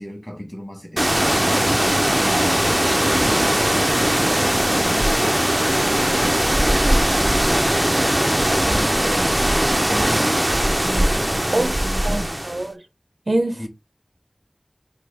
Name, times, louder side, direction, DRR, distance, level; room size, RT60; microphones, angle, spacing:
voice 1, 0.0-2.8 3.1-5.5 5.8-10.4 10.8-12.4 13.6-13.7, equal, 20° left, 1.5 m, -34 dB
sound 1, 1.0-12.6, right 1 dB, 20° right, 0.4 m, -19 dB
voice 2, 12.0-12.8 13.3-13.7, right 1 dB, 75° right, 0.5 m, -23 dB
3.4 x 2.3 x 3.4 m
wide cardioid pair, 40°, 0 cm